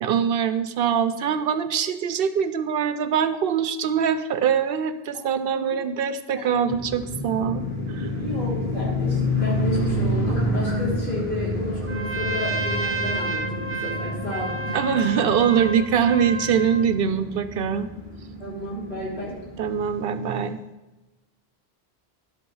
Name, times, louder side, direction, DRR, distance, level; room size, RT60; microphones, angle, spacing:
voice 1, 0.0-7.6 7.9-8.1 14.7-17.9 19.6-20.6, right 7 dB, 70° right, 11 dB, 0.7 m, -23 dB
voice 2, 6.3-6.6 8.0-14.8 18.4-19.3, left 1 dB, 75° left, -6 dB, 4.1 m, -32 dB
sound 1, 6.7-20.0, left 1 dB, 40° left, 2.0 m, -29 dB
Trumpet, 11.8-16.9, right 3 dB, 15° right, 0.6 m, -31 dB
11.5 x 5.5 x 5.5 m, 1.1 s
omnidirectional pair, 1.1 m